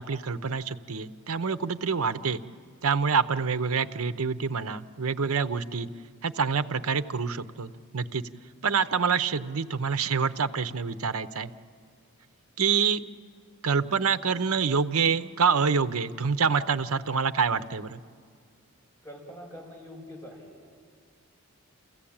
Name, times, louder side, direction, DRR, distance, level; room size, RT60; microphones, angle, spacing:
voice 1, 0.0-2.4 2.8-5.9 6.2-8.2 8.6-11.5 12.6-13.0 13.6-18.0, right 5 dB, 75° right, 11 dB, 0.7 m, -26 dB
voice 2, 19.0-20.5, equal, 15° left, -2 dB, 5.1 m, -44 dB
28.0 x 15.0 x 8.8 m, 2.1 s
head